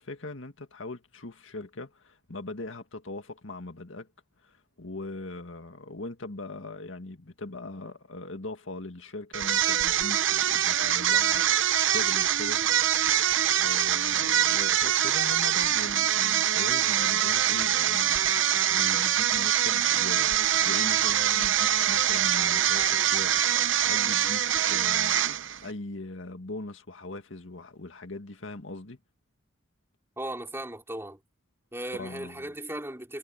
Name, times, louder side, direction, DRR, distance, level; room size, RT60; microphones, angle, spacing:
voice 1, 0.0-4.1 4.4-11.5 11.8-12.6 13.6-25.2 25.6-29.0 31.9-32.5, left 2 dB, 80° left, 2.0 m, -40 dB
sound 1, 9.3-25.7, right 11 dB, 70° right, 0.8 m, -24 dB
voice 2, 30.2-31.2 31.7-33.2, right 1 dB, 15° right, 4.1 m, -37 dB
head